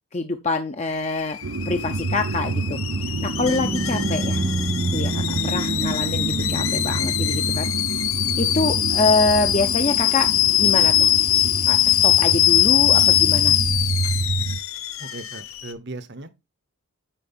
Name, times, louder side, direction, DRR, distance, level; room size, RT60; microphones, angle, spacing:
voice 1, 0.1-1.4 1.7-2.8 3.2-4.4 4.9-7.7 8.4-10.3 10.6-11.1 11.7-13.6, left 3 dB, 30° left, 0.6 m, -25 dB
Alarm / Boiling, 0.9-15.7, left 12 dB, 65° left, 0.7 m, -22 dB
sound 1, 1.4-14.6, right 3 dB, 75° right, 0.7 m, -28 dB
sound 2, 2.8-7.6, right 2 dB, 15° right, 0.3 m, -31 dB
voice 2, 9.4-9.7 11.0-11.1 15.0-16.3, right 2 dB, 50° right, 1.0 m, -38 dB
9.0 x 4.6 x 4.3 m
head